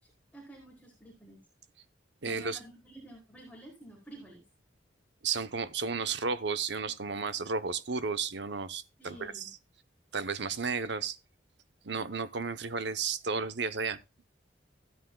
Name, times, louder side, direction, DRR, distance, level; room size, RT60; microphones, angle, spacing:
voice 1, 0.0-1.4 2.2-4.4 9.0-9.5, right 1 dB, 5° left, 4.1 m, -51 dB
voice 2, 2.2-2.6 5.2-9.5 10.1-11.2 11.8-14.0, right 5 dB, 65° right, 0.9 m, -33 dB
15.5 x 9.4 x 2.3 m
head